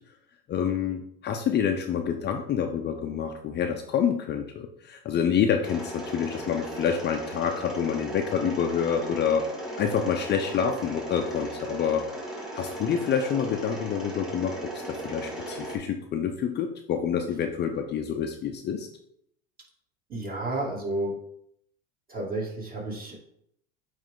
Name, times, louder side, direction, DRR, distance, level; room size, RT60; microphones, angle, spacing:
voice 1, 0.5-9.5 9.8-12.1 12.5-18.9, left 7 dB, 35° left, 4 dB, 0.6 m, -27 dB
Mechanisms, 5.6-15.8, right 1 dB, ahead, 1.9 m, -37 dB
voice 2, 20.1-21.2 22.1-23.2, right 2 dB, 30° right, -3 dB, 2.4 m, -31 dB
9.0 x 3.3 x 3.7 m, 0.72 s
supercardioid pair, 115°, 31 cm